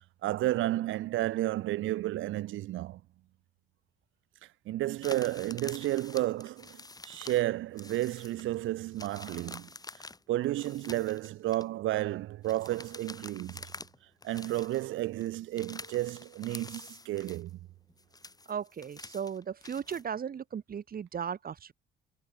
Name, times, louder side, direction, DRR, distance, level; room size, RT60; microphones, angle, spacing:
voice 1, 0.2-3.0 4.7-9.7 10.3-13.6 14.2-17.6, right 15 dB, 80° right, 0.7 m, -32 dB
sound 1, 5.0-7.5 7.8-8.6 8.9-11.6 12.4-14.0 14.2-14.8 15.2-17.5 17.9-20.0, left 3 dB, 20° left, 4.6 m, -47 dB
voice 2, 18.5-21.7, right 7 dB, 50° right, 1.9 m, -36 dB
cardioid pair, 90°, 20 cm